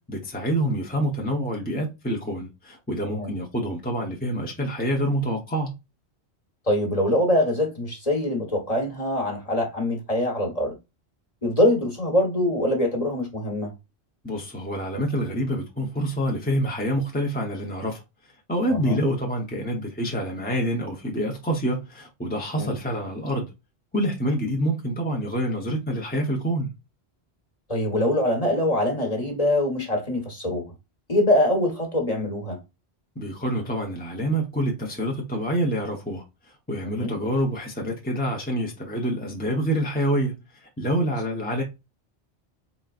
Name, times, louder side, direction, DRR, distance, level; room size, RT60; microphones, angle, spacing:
voice 1, 0.1-5.7 14.2-18.0 18.5-23.5 23.9-26.7 33.2-36.2 36.7-41.6, equal, 10° left, 0.8 m, -27 dB
voice 2, 6.7-10.7 11.4-13.7 18.7-19.0 22.6-22.7 27.7-30.7 31.1-32.6 37.0-37.1, left 1 dB, 35° left, 1.4 m, -23 dB
4.2 x 3.8 x 2.4 m
omnidirectional pair, 1.1 m